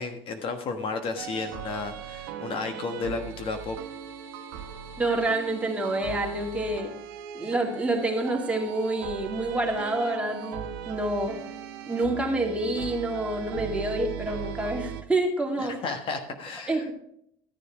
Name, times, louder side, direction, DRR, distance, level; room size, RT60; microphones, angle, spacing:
voice 1, 0.0-3.8 15.6-16.9, left 4 dB, 50° left, 6 dB, 1.4 m, -33 dB
sound 1, 1.2-15.0, right 10 dB, 90° right, 0.9 m, -39 dB
voice 2, 5.0-6.9 7.3-11.4 11.9-15.8 16.7-16.9, right 2 dB, 10° right, 0 dB, 2.4 m, -28 dB
12.5 x 6.9 x 4.8 m, 0.69 s
supercardioid pair, 105°, 12 cm